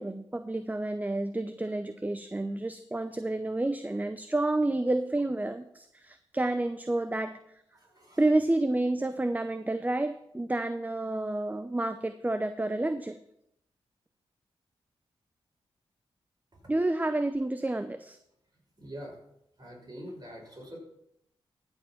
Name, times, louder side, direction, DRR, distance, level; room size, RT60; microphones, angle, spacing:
voice 1, 0.0-7.4 8.2-13.2 16.7-18.2, right 2 dB, 15° right, 10 dB, 0.6 m, -29 dB
voice 2, 7.7-8.3 16.5-16.7 18.5-19.2 19.6-20.8, equal, 35° right, -1 dB, 5.3 m, -45 dB
14.5 x 5.4 x 5.8 m, 0.77 s
supercardioid pair, 45°, 11 cm